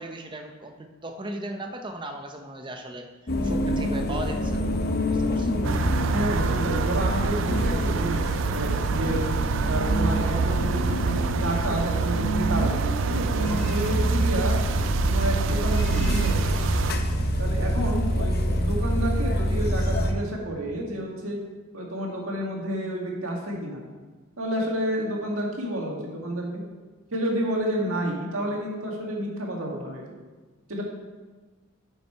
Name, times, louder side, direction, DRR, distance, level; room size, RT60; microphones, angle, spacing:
voice 1, 0.0-3.1 3.4-4.7 5.1-5.6, right 1 dB, 20° right, 4 dB, 0.7 m, -37 dB
sound 1, 3.3-20.1, left 1 dB, 50° left, 0.8 m, -27 dB
sound 2, 5.6-16.9, right 5 dB, 60° right, 0.3 m, -26 dB
voice 2, 6.1-9.2 9.6-11.0 11.3-14.6 15.1-16.4 17.4-21.4 21.7-23.8 24.4-26.6 27.1-30.2 30.7-30.8, equal, 80° right, -1 dB, 1.9 m, -30 dB
9.2 x 5.7 x 4.4 m, 1.3 s
head